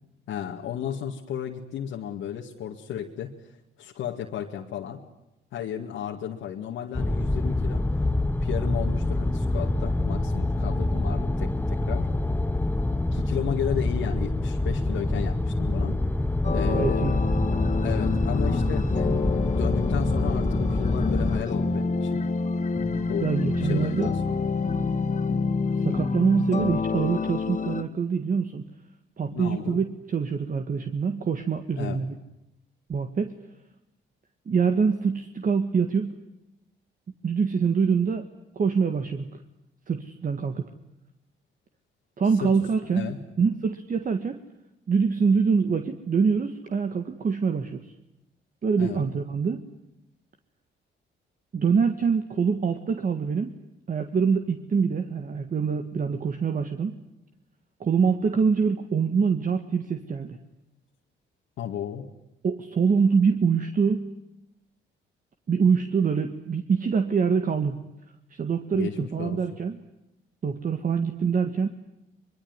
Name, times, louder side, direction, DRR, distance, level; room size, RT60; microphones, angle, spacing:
voice 1, 0.3-3.3 3.8-5.0 5.5-7.8 8.4-12.1 13.1-16.0 16.5-17.2 17.8-22.2 23.1-23.3 23.6-24.5 24.8-24.9 29.3-29.8 31.8-32.0 42.4-42.5 42.9-43.2 48.8-49.0 61.6-62.1 68.7-69.4, left 9 dB, 85° left, -1 dB, 2.2 m, -34 dB
sound 1, 6.9-21.4, left 2 dB, 10° left, 1.1 m, -26 dB
sound 2, 16.4-27.8, left 4 dB, 35° left, 2.4 m, -28 dB
voice 2, 16.7-17.2 23.2-24.1 25.8-28.6 29.2-32.2 32.9-33.4 34.5-36.2 37.2-38.3 38.6-39.3 39.9-40.7 42.2-44.4 44.9-47.8 48.6-49.6 51.5-53.5 53.9-57.0 57.8-60.4 62.4-64.2 65.5-67.8 68.3-69.8 70.4-71.7, right 5 dB, 45° right, 7 dB, 1.8 m, -25 dB
23.5 x 23.0 x 9.7 m, 0.89 s
cardioid pair, 90°, 20 cm